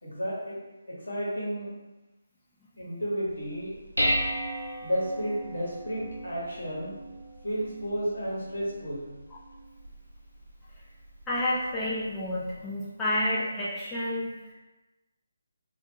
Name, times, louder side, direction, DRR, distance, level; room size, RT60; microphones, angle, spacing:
voice 1, 0.0-0.6 0.9-1.7 2.8-3.7 4.8-7.0 7.4-9.1, equal, 65° left, -6 dB, 1.0 m, -32 dB
Dishes pots and pans, 3.3-12.5, equal, 80° left, 0.6 m, -36 dB
voice 2, 11.3-14.5, left 1 dB, 10° left, -9 dB, 0.4 m, -30 dB
2.3 x 2.1 x 2.9 m, 1.1 s
figure-of-eight pair, 145°, 0 cm